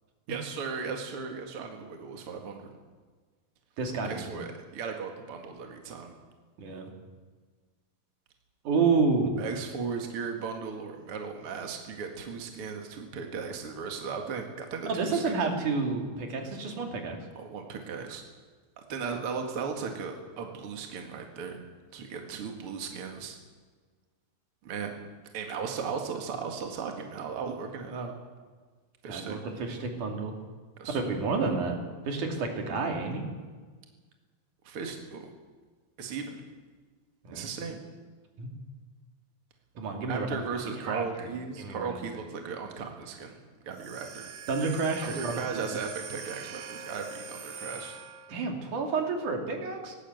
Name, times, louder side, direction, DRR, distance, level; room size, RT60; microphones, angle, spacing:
voice 1, 0.3-2.7 4.0-6.1 9.4-15.4 17.4-18.2 18.9-21.6 21.9-23.4 24.6-25.0 25.3-28.1 29.0-29.4 30.8-31.0 34.6-35.3 36.0-36.4 37.3-37.8 40.0-43.4 43.7-44.3 45.0-48.0, right 5 dB, 50° right, 3 dB, 2.7 m, -36 dB
voice 2, 3.8-4.4 6.6-6.9 8.7-9.3 14.8-17.2 29.1-30.3 30.9-31.8 32.1-33.2 37.2-37.5 38.4-38.5 39.8-40.4 40.7-41.3 41.6-42.0 44.5-45.7 48.3-50.0, right 4 dB, 85° right, 2 dB, 4.1 m, -30 dB
sound 1, 43.7-48.5, right 5 dB, 65° right, 2.6 m, -43 dB
18.5 x 18.0 x 8.0 m, 1.5 s
omnidirectional pair, 3.5 m